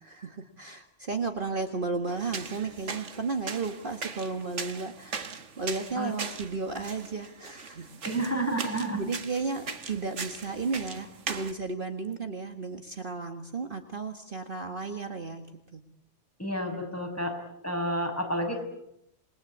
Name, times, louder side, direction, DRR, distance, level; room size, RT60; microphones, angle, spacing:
voice 1, 0.0-7.9 8.6-15.5 15.7-15.8, right 4 dB, 45° right, 6 dB, 1.8 m, -34 dB
sound 1, 2.1-11.5, right 5 dB, 75° right, 1.8 m, -40 dB
voice 2, 8.0-9.0 16.4-17.3 17.6-18.6, right 1 dB, 10° left, 3 dB, 6.0 m, -30 dB
28.0 x 21.5 x 8.6 m, 0.80 s
omnidirectional pair, 1.3 m